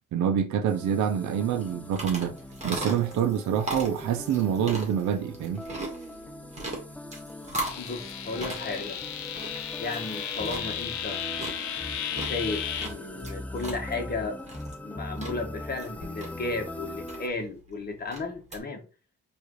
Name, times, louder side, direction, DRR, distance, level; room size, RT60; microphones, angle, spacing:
voice 1, 0.1-2.4 2.6-5.6, right 8 dB, 70° right, 0.6 m, -26 dB
sound 1, 0.7-17.3, left 1 dB, 5° left, 0.4 m, -41 dB
sound 2, 1.5-18.6, right 2 dB, 25° right, 1.6 m, -39 dB
sound 3, 7.6-12.9, left 9 dB, 70° left, 0.7 m, -34 dB
voice 2, 7.8-9.0 9.8-11.2 12.1-14.4 14.8-18.8, left 3 dB, 30° left, 1.2 m, -34 dB
4.7 x 2.6 x 3.1 m
cardioid pair, 90°, 30 cm